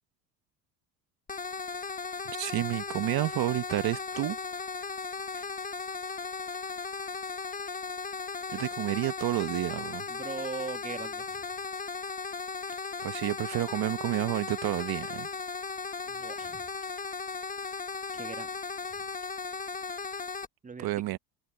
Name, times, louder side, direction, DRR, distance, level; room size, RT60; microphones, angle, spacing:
sound 1, 1.3-20.5, left 4 dB, 20° left, 1.4 m, -37 dB
voice 1, 2.4-4.4 5.4-5.5 8.5-10.1 13.0-15.3 20.8-21.2, right 16 dB, 55° right, 1.2 m, -30 dB
voice 2, 10.1-11.4 16.0-16.7 18.1-18.5 18.9-19.0 20.6-20.9, right 5 dB, 15° right, 1.5 m, -40 dB
supercardioid pair, 80°, 44 cm